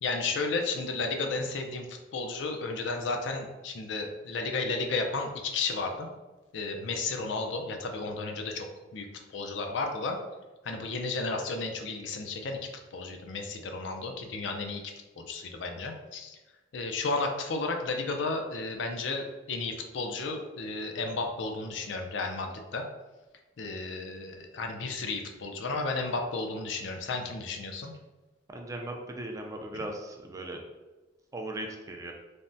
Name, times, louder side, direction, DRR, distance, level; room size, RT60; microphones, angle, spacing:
voice 1, 0.0-6.1 6.5-8.7 8.9-10.2 10.6-14.8 15.2-16.4 16.7-22.8 23.6-27.9 29.7-29.8, left 3 dB, 75° left, 4 dB, 0.4 m, -33 dB
voice 2, 28.5-30.6 31.3-32.1, right 1 dB, 20° right, 2 dB, 0.3 m, -38 dB
3.3 x 2.1 x 2.6 m, 1.1 s
head